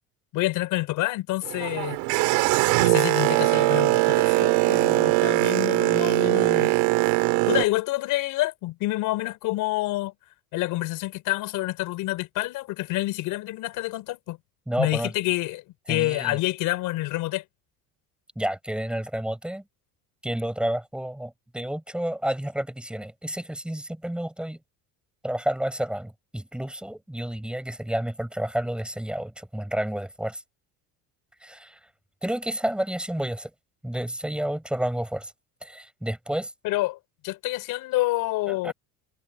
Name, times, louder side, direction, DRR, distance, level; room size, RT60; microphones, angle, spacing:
voice 1, 0.3-2.0 2.8-6.7 7.5-10.1 10.5-14.4 14.8-15.6 15.9-17.4 36.6-37.0 37.2-38.7, left 18 dB, 65° left, 5.4 m, -27 dB
Boat Water vehicle, 1.4-7.6, right 23 dB, 90° right, 3.0 m, -21 dB
voice 2, 14.7-15.1 15.9-16.4 18.4-19.6 20.2-24.6 25.2-30.4 31.4-31.8 32.2-33.5 33.8-35.3 35.6-36.5 38.5-38.7, right 1 dB, 5° right, 6.3 m, -30 dB
cardioid pair, 165°, 35 cm